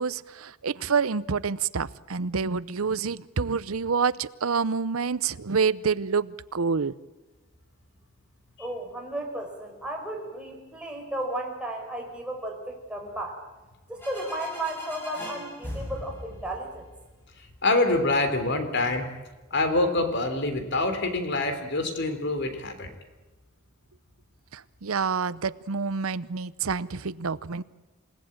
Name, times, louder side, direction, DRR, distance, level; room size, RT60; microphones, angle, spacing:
voice 1, 0.0-7.0 24.5-27.6, right 5 dB, 85° right, 17 dB, 0.8 m, -27 dB
voice 2, 8.6-13.4 13.9-16.9, right 1 dB, 5° right, 1 dB, 5.0 m, -34 dB
sound 1, 14.0-17.6, equal, 10° left, 7.8 m, -40 dB
voice 3, 17.6-19.1 19.5-22.9, left 2 dB, 55° left, 8 dB, 3.5 m, -25 dB
28.5 x 17.5 x 8.9 m, 1.2 s
head